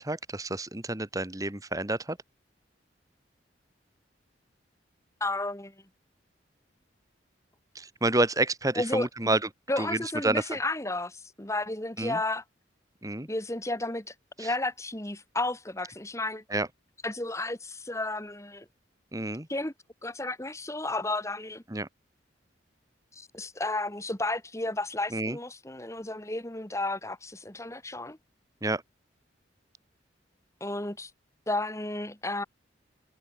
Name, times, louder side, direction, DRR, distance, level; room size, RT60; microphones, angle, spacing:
voice 1, 0.0-2.2 7.8-9.4 9.8-10.4 12.0-12.2 13.0-13.3 14.4-14.5 16.5-16.7 19.1-19.5 21.7-21.9 25.1-25.4 28.6-28.8, right 2 dB, 20° right, 1.7 m, -29 dB
voice 2, 5.2-5.8 8.8-9.4 9.7-12.4 13.3-16.4 17.0-18.7 19.5-19.7 20.0-21.6 23.1-28.2 30.6-31.1 31.5-32.4, left 2 dB, 15° left, 2.3 m, -32 dB
head